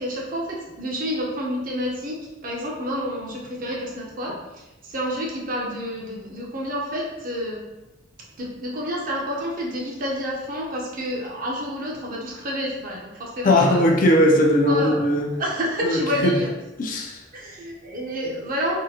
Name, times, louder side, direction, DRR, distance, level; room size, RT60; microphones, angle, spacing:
voice 1, 0.0-2.2 2.4-4.4 4.9-7.6 8.4-13.8 14.5-15.0 15.4-16.5 17.3-18.8, equal, 50° right, -2 dB, 0.7 m, -29 dB
voice 2, 13.4-15.3 15.8-16.4 16.8-17.2, left 1 dB, 45° left, 1 dB, 0.5 m, -19 dB
3.6 x 2.1 x 2.8 m, 1.0 s
head